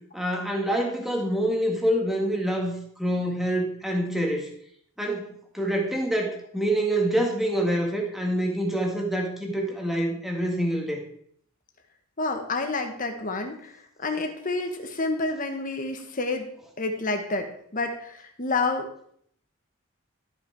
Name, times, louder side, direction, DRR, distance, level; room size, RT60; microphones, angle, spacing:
voice 1, 0.1-4.5 5.0-11.0, right 1 dB, ahead, 1 dB, 1.8 m, -26 dB
voice 2, 12.2-13.7 14.0-16.5 16.8-18.9, left 3 dB, 40° left, 4 dB, 1.5 m, -29 dB
13.5 x 6.0 x 4.7 m, 0.65 s
head